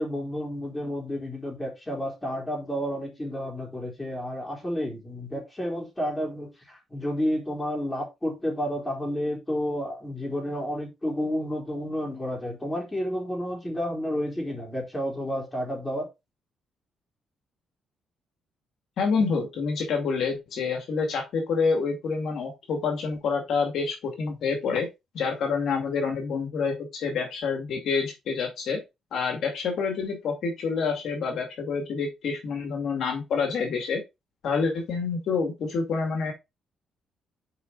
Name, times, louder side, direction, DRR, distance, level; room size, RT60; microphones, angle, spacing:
voice 1, 0.0-16.1, equal, 15° left, 4.2 m, -31 dB
voice 2, 19.0-24.9 25.1-28.8 29.1-34.0 34.4-36.3, left 5 dB, 70° left, 2.3 m, -27 dB
7.4 x 5.1 x 4.0 m
cardioid pair, 90°, 0 cm